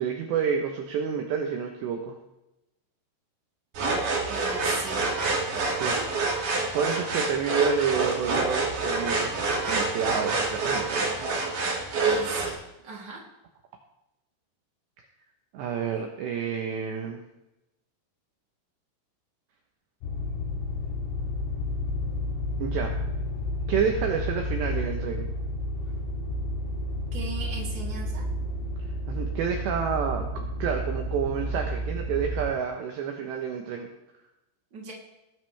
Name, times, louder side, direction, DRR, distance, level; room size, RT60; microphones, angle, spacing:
voice 1, 0.0-2.2 5.8-6.0 6.7-11.4 15.5-17.2 22.6-22.9 23.7-25.3 29.1-33.9, right 7 dB, 70° right, 2 dB, 2.9 m, -29 dB
sound 1, 3.7-12.5, right 3 dB, 45° right, 3.6 m, -27 dB
voice 2, 4.3-5.0 5.5-6.1 12.0-12.6 12.8-13.2 27.1-28.2 34.7-34.9, right 4 dB, 25° right, -3 dB, 3.2 m, -38 dB
sound 2, 20.0-32.5, left 1 dB, 80° left, 5.3 m, -31 dB
20.5 x 11.0 x 3.5 m, 0.92 s
omnidirectional pair, 5.9 m